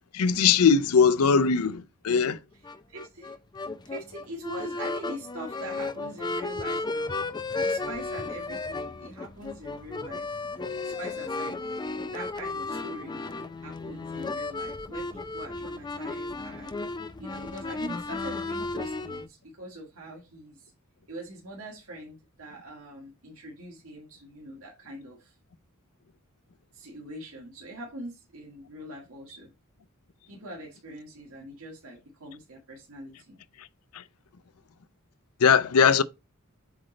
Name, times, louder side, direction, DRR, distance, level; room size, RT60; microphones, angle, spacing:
voice 1, 0.1-2.4 33.9-34.0 35.4-36.0, left 6 dB, 85° left, 0.5 m, -20 dB
sound 1, 2.6-19.3, left 3 dB, 20° left, 0.5 m, -34 dB
voice 2, 2.9-10.5 10.8-11.6 12.0-13.2 13.6-20.7 21.1-25.3 26.7-29.5 30.3-33.4, right 1 dB, 75° right, 1.8 m, -43 dB
7.9 x 3.2 x 3.7 m
head